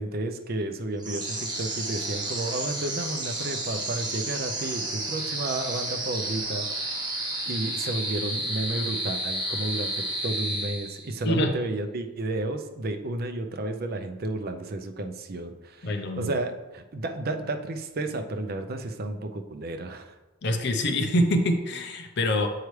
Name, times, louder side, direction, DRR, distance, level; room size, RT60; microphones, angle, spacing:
voice 1, 0.0-7.1 7.5-20.1, right 2 dB, 50° right, 6 dB, 0.5 m, -32 dB
sound 1, 1.0-11.2, right 1 dB, 20° right, 0.9 m, -31 dB
voice 2, 15.8-16.3 20.4-22.5, left 1 dB, 60° left, 5 dB, 0.7 m, -25 dB
8.0 x 4.7 x 3.2 m, 1.1 s
head